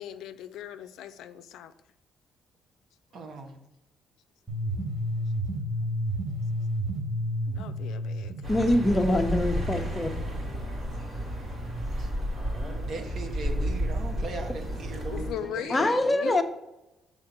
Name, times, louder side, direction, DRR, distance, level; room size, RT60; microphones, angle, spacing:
voice 1, 0.0-1.7 4.6-4.7 7.5-8.6 15.1-16.4, left 10 dB, 85° left, 11 dB, 0.4 m, -38 dB
voice 2, 3.1-3.6 12.0-12.1 12.9-16.1, right 3 dB, 65° right, 4 dB, 1.2 m, -39 dB
sound 1, 4.5-10.5, equal, 15° right, 1.7 m, -32 dB
Accelerating revving vroom, 8.4-15.3, equal, 45° right, 2.7 m, -32 dB
voice 3, 8.5-10.2 15.7-16.4, left 1 dB, 20° left, 5 dB, 0.8 m, -24 dB
6.6 x 3.7 x 6.0 m, 0.92 s
cardioid pair, 90°, 0 cm